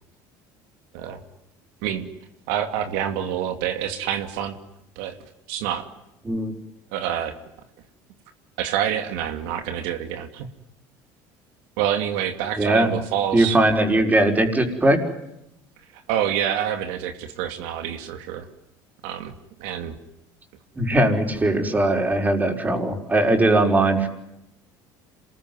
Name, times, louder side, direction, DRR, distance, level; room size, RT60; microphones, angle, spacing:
voice 1, 2.5-4.6 5.0-5.2 5.5-5.9 6.9-7.3 8.6-10.5 11.8-13.6 15.9-18.5 19.0-19.3 19.6-20.0, right 10 dB, 80° right, 7 dB, 2.5 m, -27 dB
voice 2, 12.6-12.9 13.3-15.0 20.8-24.1, right 1 dB, 20° right, 5 dB, 5.4 m, -20 dB
27.0 x 21.5 x 9.6 m, 0.85 s
supercardioid pair, 95°, 9 cm